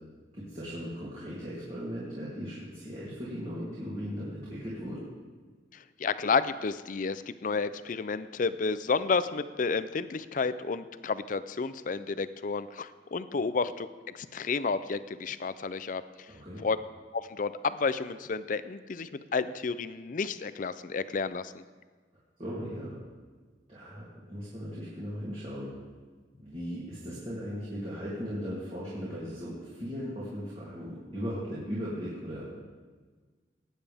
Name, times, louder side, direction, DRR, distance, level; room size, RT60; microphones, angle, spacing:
voice 1, 0.3-5.0 16.3-16.6 22.4-23.0 23.7-25.7 26.4-32.6, equal, 35° right, -9 dB, 2.9 m, -38 dB
voice 2, 5.7-13.9 14.1-16.0 16.6-16.8 17.1-21.6, left 4 dB, 45° left, 14 dB, 0.5 m, -31 dB
19.0 x 9.0 x 3.5 m, 1.4 s
head